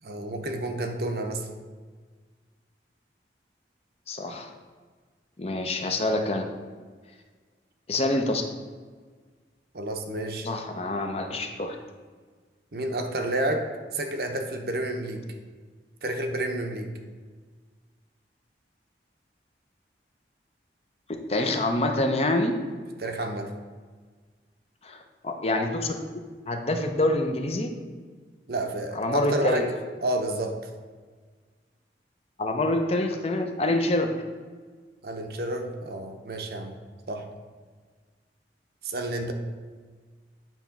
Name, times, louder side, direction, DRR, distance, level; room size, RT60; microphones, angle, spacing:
voice 1, 0.0-1.5 9.7-10.5 12.7-15.3 16.0-16.9 23.0-23.5 28.5-29.7 30.0-30.7 35.0-36.8 37.1-37.3 38.8-39.3, right 1 dB, 55° right, 4 dB, 0.8 m, -30 dB
voice 2, 4.1-4.5 5.4-6.5 7.9-8.4 10.4-11.8 21.1-22.6 24.8-25.9 26.4-27.7 28.9-29.7 32.4-34.1, left 2 dB, 35° left, 4 dB, 0.6 m, -26 dB
9.0 x 3.0 x 5.8 m, 1.5 s
head